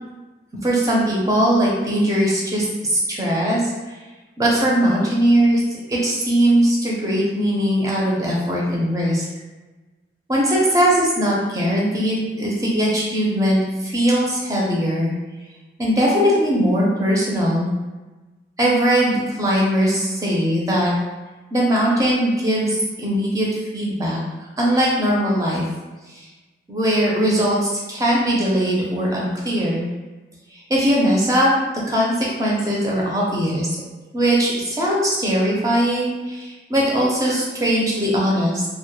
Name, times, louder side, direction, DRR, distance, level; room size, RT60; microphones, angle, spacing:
voice 1, 0.6-3.6 4.4-9.2 10.3-15.1 15.8-17.7 18.6-20.9 21.5-23.5 23.7-24.2 24.6-25.6 26.1-26.3 26.7-29.8 30.7-31.5 31.9-33.7 34.1-38.7, equal, 20° right, -4 dB, 0.4 m, -20 dB
2.1 x 2.1 x 3.0 m, 1.2 s
head